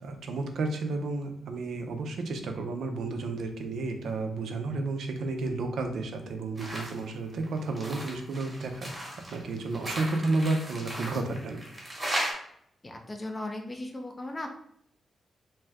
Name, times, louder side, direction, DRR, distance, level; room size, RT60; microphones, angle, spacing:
voice 1, 0.0-11.6, right 3 dB, 80° right, 5 dB, 0.5 m, -32 dB
sound 1, 6.6-7.0 7.3-12.3, right 1 dB, 20° right, 0.9 m, -36 dB
voice 2, 12.8-14.6, left 1 dB, 20° left, 3 dB, 0.4 m, -37 dB
2.7 x 2.3 x 3.3 m, 0.69 s
wide cardioid pair, 140°, 0 cm